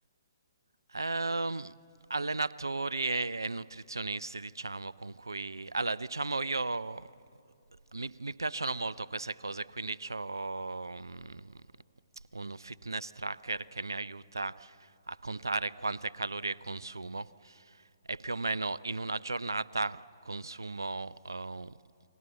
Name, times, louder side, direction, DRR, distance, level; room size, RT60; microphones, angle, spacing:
voice 1, 0.9-1.7 2.1-7.1 7.9-11.6 12.3-21.7, right 3 dB, 75° right, 20 dB, 0.5 m, -35 dB
29.5 x 21.5 x 8.3 m, 2.7 s
figure-of-eight pair, 125°, 2 cm